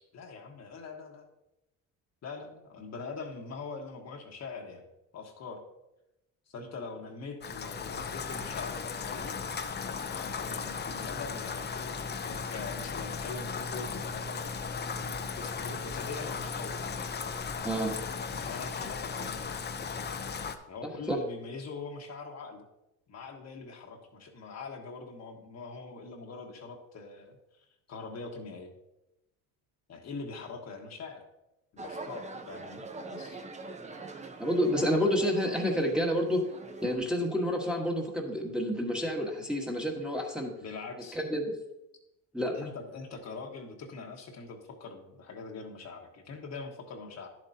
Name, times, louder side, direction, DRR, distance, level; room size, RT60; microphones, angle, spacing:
voice 1, 0.1-1.3 2.2-4.9 5.1-5.6 6.5-9.4 10.1-14.4 15.0-16.8 18.3-19.5 20.7-22.6 23.1-28.7 29.9-31.2 31.7-32.9 33.1-33.4 40.6-41.2 42.5-47.3, left 4 dB, 45° left, 2 dB, 1.3 m, -43 dB
Rain, 7.4-20.6, left 5 dB, 30° left, 0.6 m, -36 dB
sound 1, 31.8-37.0, right 3 dB, 20° right, 0.7 m, -43 dB
voice 2, 34.4-36.4 36.8-40.5 41.1-41.4 42.3-42.6, equal, ahead, -1 dB, 1.3 m, -29 dB
10.5 x 7.5 x 2.8 m, 0.92 s
cardioid pair, 100°, 37 cm